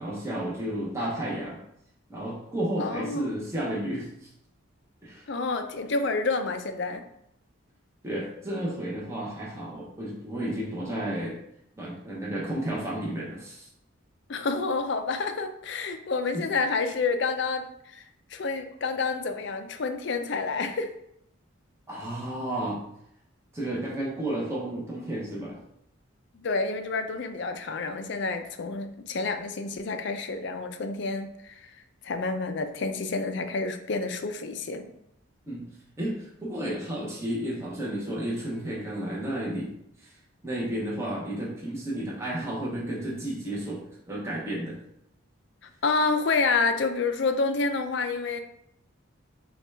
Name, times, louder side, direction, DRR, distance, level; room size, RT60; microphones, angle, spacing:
voice 1, 0.0-1.6 2.1-4.3 5.0-5.2 8.0-11.4 11.8-13.7 16.3-16.5 21.9-22.8 23.5-25.6 35.5-35.7 36.0-39.7 40.0-40.1 40.4-44.8, right 1 dB, 15° right, -5 dB, 1.0 m, -32 dB
voice 2, 2.8-3.3 5.3-7.0 14.3-18.0 18.3-20.9 26.3-34.9 45.8-48.4, left 4 dB, 55° left, 7 dB, 0.4 m, -29 dB
5.8 x 2.4 x 3.3 m, 0.75 s
head